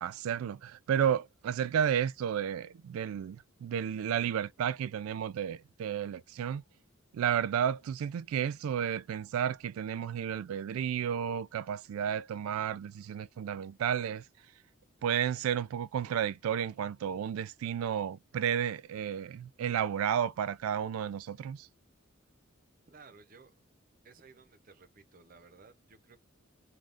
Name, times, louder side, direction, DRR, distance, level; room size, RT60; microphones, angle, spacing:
voice 1, 0.0-6.6 7.1-14.2 15.0-21.7, right 9 dB, 90° right, 0.3 m, -32 dB
voice 2, 22.9-23.5 24.0-26.2, right 4 dB, 40° right, 0.6 m, -56 dB
3.4 x 2.3 x 2.5 m
head